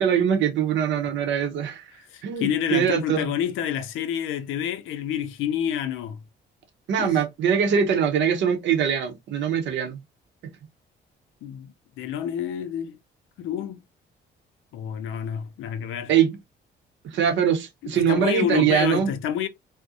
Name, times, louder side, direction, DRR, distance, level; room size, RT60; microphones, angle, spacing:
voice 1, 0.0-1.9 2.2-3.3 6.9-10.0 16.1-16.4 17.1-19.1, right 8 dB, 70° right, 0.7 m, -22 dB
voice 2, 2.1-6.2 7.0-7.2 11.4-13.0 13.4-13.8 14.7-16.1 17.8-19.5, left 9 dB, 90° left, 0.5 m, -28 dB
2.4 x 2.0 x 2.7 m
cardioid pair, 90°, 20 cm